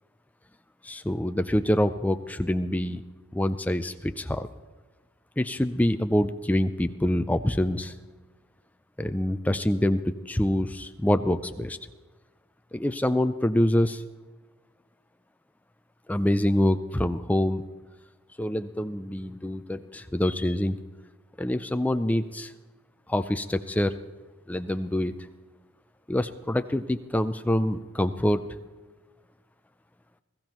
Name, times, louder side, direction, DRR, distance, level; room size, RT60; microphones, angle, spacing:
voice 1, 0.8-3.0 3.3-4.5 5.4-7.9 9.0-10.0 10.3-11.8 12.7-14.0 16.1-17.6 18.4-20.8 21.4-22.5 23.1-23.9 24.5-25.1 26.1-28.4, left 1 dB, 5° left, 10 dB, 0.3 m, -25 dB
21.0 x 14.5 x 3.0 m, 1.3 s
head